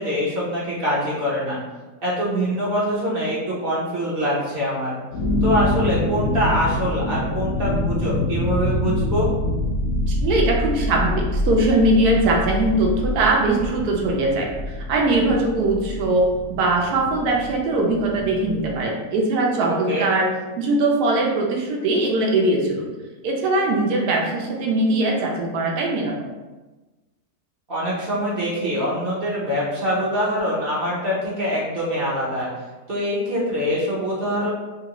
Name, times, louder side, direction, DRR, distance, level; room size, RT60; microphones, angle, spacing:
voice 1, 0.0-1.6 2.0-5.0 5.4-9.3 19.9-20.1 27.7-32.5 32.9-34.5, equal, 45° right, -7 dB, 0.9 m, -24 dB
sound 1, 5.1-18.8, left 1 dB, 60° left, 0.8 m, -26 dB
voice 2, 10.1-20.3 20.6-22.9 23.2-26.1, right 2 dB, 80° right, -1 dB, 1.1 m, -21 dB
3.3 x 2.5 x 2.9 m, 1.2 s
omnidirectional pair, 1.7 m